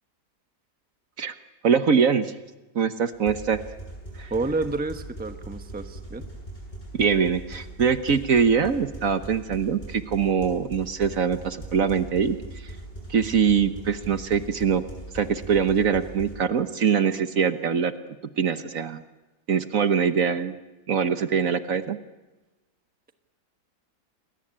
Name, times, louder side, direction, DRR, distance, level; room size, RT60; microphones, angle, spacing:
voice 1, 1.6-2.3 2.7-3.6 4.2-4.3 6.9-12.4 12.6-12.7 13.1-14.8 15.1-17.9 18.4-19.0 19.5-20.5 20.9-22.0, right 6 dB, 55° right, 10 dB, 1.4 m, -23 dB
sound 1, 3.1-16.3, right 1 dB, 25° left, 7.9 m, -40 dB
voice 2, 4.3-6.2, right 3 dB, 5° right, 7 dB, 1.0 m, -29 dB
29.0 x 21.0 x 8.9 m, 1.1 s
omnidirectional pair, 1.8 m